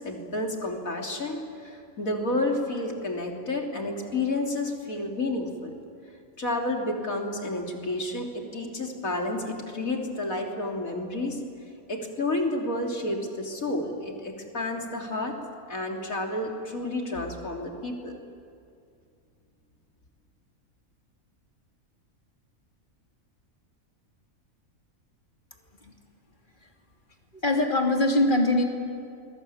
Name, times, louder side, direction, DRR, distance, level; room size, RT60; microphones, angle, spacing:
voice 1, 0.0-5.7 6.4-11.4 11.9-15.3 15.7-18.2, left 2 dB, 75° left, 1 dB, 3.7 m, -30 dB
voice 2, 27.3-28.6, left 1 dB, 35° left, 1 dB, 3.2 m, -23 dB
29.0 x 22.5 x 8.8 m, 2.4 s
omnidirectional pair, 1.5 m